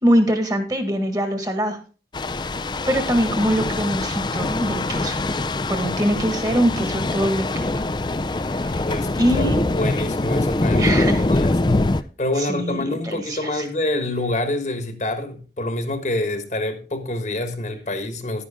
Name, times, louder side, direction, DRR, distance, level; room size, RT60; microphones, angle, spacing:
voice 1, 0.0-1.8 2.9-5.2 5.7-7.8 8.6-8.8 9.1-9.9 10.7-11.3 12.4-13.7, equal, 20° right, 1.6 m, -23 dB
sound 1, 2.1-12.0, left 2 dB, 25° left, 0.4 m, -23 dB
voice 2, 8.9-10.9 11.3-11.6 12.2-18.5, left 1 dB, 40° left, 1.3 m, -26 dB
11.0 x 9.8 x 3.6 m
head